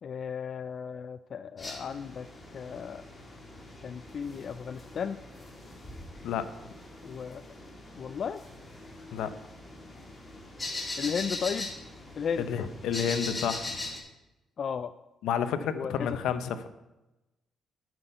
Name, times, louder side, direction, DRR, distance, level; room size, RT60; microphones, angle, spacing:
voice 1, 0.0-2.3 2.5-3.0 3.8-5.2 7.0-7.4 7.9-8.4 11.0-11.7 12.2-12.5 14.6-14.9 15.7-16.2, left 7 dB, 55° left, 12 dB, 0.4 m, -34 dB
sound 1, 1.6-14.0, left 2 dB, 20° left, 2.8 m, -41 dB
voice 2, 12.4-13.7 15.2-16.7, left 8 dB, 85° left, 11 dB, 0.8 m, -30 dB
9.3 x 6.2 x 7.9 m, 0.99 s
cardioid pair, 90°, 0 cm